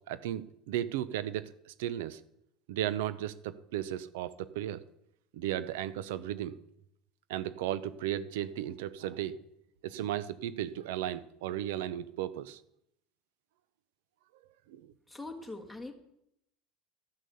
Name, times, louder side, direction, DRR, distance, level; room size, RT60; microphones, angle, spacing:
voice 1, 0.1-2.2 2.7-4.8 5.3-6.6 7.3-9.4 9.8-12.6 14.7-14.9, right 12 dB, 90° right, 16 dB, 0.5 m, -35 dB
voice 2, 15.1-15.9, left 2 dB, ahead, 1 dB, 1.6 m, -42 dB
13.0 x 6.4 x 6.9 m, 0.77 s
supercardioid pair, 140°, 0 cm